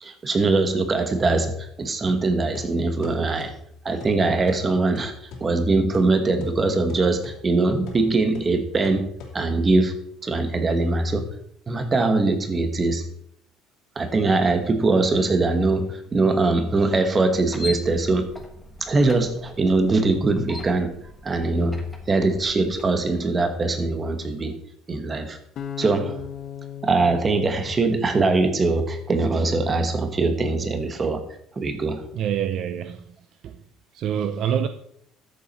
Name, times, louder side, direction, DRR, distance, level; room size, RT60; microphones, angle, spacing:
voice 1, 0.0-3.5 3.8-5.1 5.4-9.1 9.3-10.0 10.2-11.2 11.7-13.0 13.9-18.3 18.8-20.9 21.2-21.8 22.1-24.6 24.9-25.4 25.8-26.3 26.8-31.2 31.6-32.0, right 3 dB, 20° right, 7 dB, 1.2 m, -22 dB
sound 1, 2.1-9.8, left 4 dB, 65° left, 2.7 m, -42 dB
sound 2, 17.3-22.9, left 2 dB, 5° left, 1.3 m, -40 dB
sound 3, 25.6-28.7, left 9 dB, 45° left, 0.8 m, -37 dB
voice 2, 32.1-33.0 33.4-33.6 33.9-34.7, right 9 dB, 50° right, 10 dB, 0.6 m, -26 dB
13.0 x 7.4 x 4.2 m, 0.68 s
cardioid pair, 150°, 0 cm